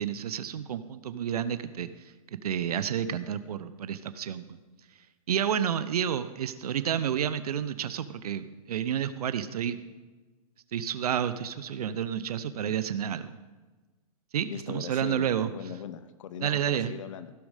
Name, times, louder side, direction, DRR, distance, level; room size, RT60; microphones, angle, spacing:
voice 1, 0.0-1.9 2.3-4.6 5.3-9.8 10.7-13.4 14.3-15.5 16.4-17.0, right 9 dB, 85° right, 13 dB, 0.7 m, -30 dB
voice 2, 14.5-17.3, left 8 dB, 55° left, 12 dB, 0.7 m, -40 dB
16.0 x 6.4 x 4.9 m, 1.2 s
hypercardioid pair, 155°, 19 cm